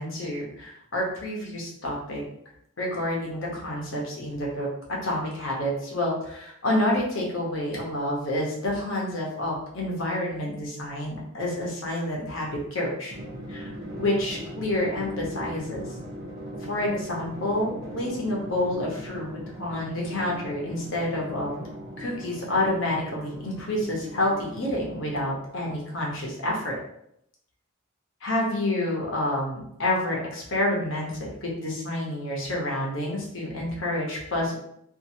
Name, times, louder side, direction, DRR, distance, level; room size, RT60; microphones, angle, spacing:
voice 1, 0.0-2.2 2.8-4.7 5.0-13.1 13.5-13.7 14.0-15.8 16.6-21.5 22.0-26.7 28.2-34.6, left 1 dB, 60° left, -3 dB, 0.9 m, -28 dB
Drum, 13.1-25.5, equal, 60° right, 0.8 m, -39 dB
2.8 x 2.6 x 2.6 m, 0.73 s
head